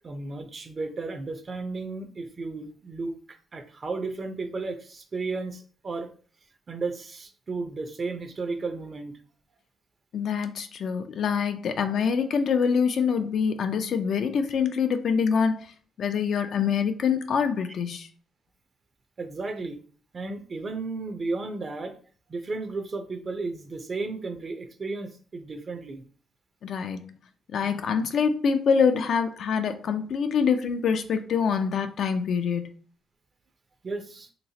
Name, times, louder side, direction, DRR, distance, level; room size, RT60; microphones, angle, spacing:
voice 1, 0.0-3.1 3.5-6.1 6.7-9.1 19.2-19.8 20.1-22.0 22.3-26.0 33.8-34.3, right 3 dB, 40° right, 7 dB, 0.6 m, -33 dB
voice 2, 10.1-15.7 16.0-18.1 26.6-27.2 27.5-32.7, left 6 dB, 65° left, 7 dB, 0.4 m, -25 dB
3.1 x 3.0 x 2.7 m, 0.42 s
cardioid pair, 90°, 0 cm